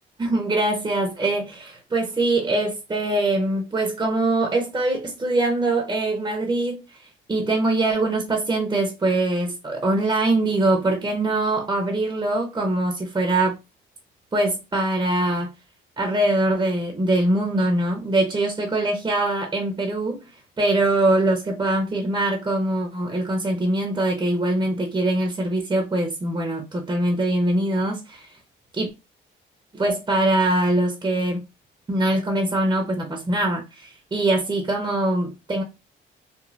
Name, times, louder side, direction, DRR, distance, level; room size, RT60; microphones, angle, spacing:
voice 1, 0.2-6.8 7.3-13.6 14.3-15.5 16.0-20.2 20.6-28.4 28.7-28.9 29.7-31.4 31.9-35.6, right 2 dB, 20° right, 0.7 m, -23 dB
3.1 x 2.1 x 2.5 m
cardioid pair, 90°, 20 cm